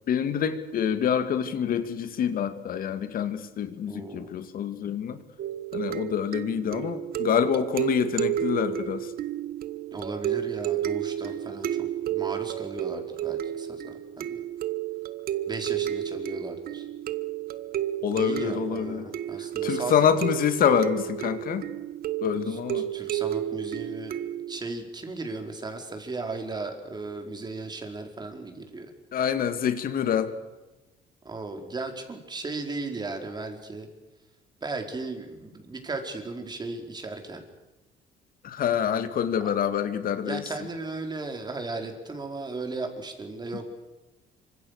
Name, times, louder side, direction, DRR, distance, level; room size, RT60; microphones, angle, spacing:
voice 1, 0.1-5.2 5.7-9.1 18.0-19.0 19.6-21.6 22.2-22.9 29.1-30.3 38.4-40.4, left 8 dB, 60° left, 10 dB, 2.4 m, -26 dB
voice 2, 3.9-4.3 9.9-14.4 15.5-16.9 18.1-20.2 22.4-24.2 24.5-28.9 31.2-33.9 34.6-37.4 40.2-43.7, right 3 dB, 25° right, 4 dB, 4.6 m, -36 dB
sound 1, 5.4-24.6, right 11 dB, 60° right, 1.4 m, -32 dB
26.5 x 25.5 x 6.8 m, 1.1 s
cardioid pair, 110°, 17 cm